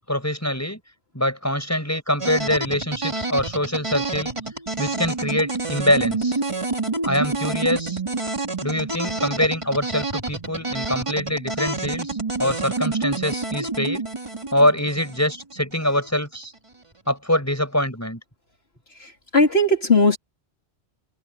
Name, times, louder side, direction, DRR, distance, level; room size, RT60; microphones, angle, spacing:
voice 1, 0.1-0.8 1.1-4.3 4.8-6.4 7.1-8.0 8.6-14.0 14.5-16.5 17.1-18.2, left 1 dB, 15° left, 6.6 m, -24 dB
sound 1, 2.2-16.1, right 3 dB, 25° right, 2.2 m, -28 dB
voice 2, 19.0-20.2, left 2 dB, 65° left, 3.2 m, -18 dB
omnidirectional pair, 1.1 m